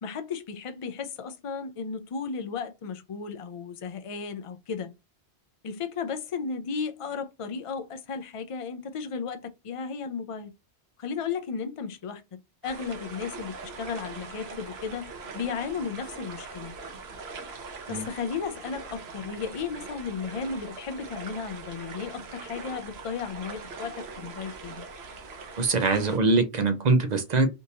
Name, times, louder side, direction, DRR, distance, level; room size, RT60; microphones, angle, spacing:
voice 1, 0.0-4.9 5.6-10.5 11.0-12.2 12.6-16.8 17.9-24.9, left 5 dB, 45° left, 0.4 m, -34 dB
sound 1, 12.6-26.2, right 4 dB, 70° right, 1.1 m, -42 dB
voice 2, 25.6-27.5, right 3 dB, 45° right, 0.7 m, -23 dB
3.6 x 2.6 x 2.8 m
omnidirectional pair, 1.1 m